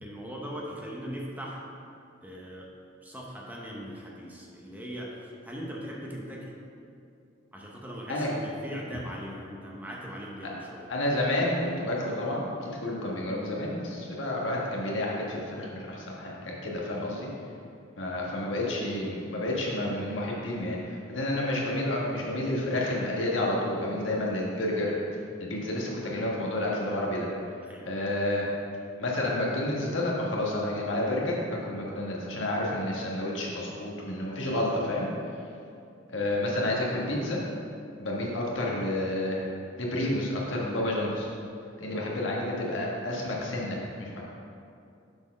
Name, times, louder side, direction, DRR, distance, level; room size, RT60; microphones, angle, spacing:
voice 1, 0.0-1.6 2.2-2.7 3.0-6.6 7.5-10.9 16.8-17.2 27.6-27.9, equal, 10° right, -3 dB, 0.8 m, -40 dB
voice 2, 10.9-17.3 18.0-24.9 25.4-27.3 27.8-28.5 29.0-35.1 36.1-37.4 38.0-39.4 39.8-41.3 41.8-44.2, left 1 dB, 70° left, -3 dB, 1.4 m, -30 dB
6.9 x 4.4 x 5.3 m, 2.5 s
head